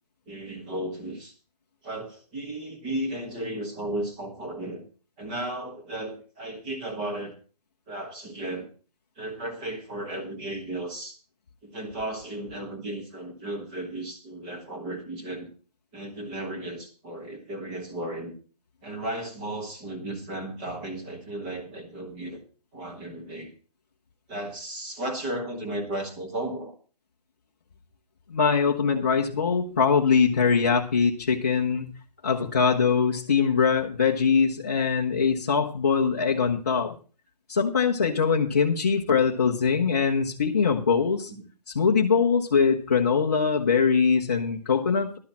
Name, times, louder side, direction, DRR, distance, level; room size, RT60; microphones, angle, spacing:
voice 1, 0.3-1.3 1.8-4.8 5.2-7.3 7.9-8.7 9.2-11.2 11.6-15.5 15.9-18.3 18.8-22.4 22.7-23.5 24.3-26.7 41.3-41.4, right 1 dB, 10° right, 3 dB, 1.3 m, -34 dB
voice 2, 28.3-31.9 32.2-36.9 37.5-41.3 41.7-45.2, left 6 dB, 25° left, -2 dB, 0.8 m, -22 dB
11.5 x 6.3 x 7.2 m, 0.37 s
hypercardioid pair, 180°, 21 cm